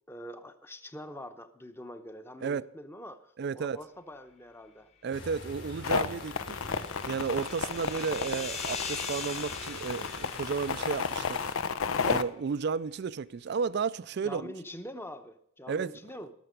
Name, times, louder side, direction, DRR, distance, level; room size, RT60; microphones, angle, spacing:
voice 1, 0.1-4.9 14.2-16.3, left 1 dB, 10° left, 0.8 m, -44 dB
voice 2, 3.4-3.8 5.0-6.3 7.1-11.4 12.0-14.5 15.7-15.9, right 5 dB, 55° right, 0.4 m, -33 dB
sound 1, 5.1-11.5, left 3 dB, 60° left, 3.8 m, -44 dB
sound 2, 5.8-12.2, left 6 dB, 90° left, 0.7 m, -32 dB
sound 3, 6.1-11.6, left 5 dB, 30° left, 1.3 m, -41 dB
18.0 x 6.9 x 5.1 m
head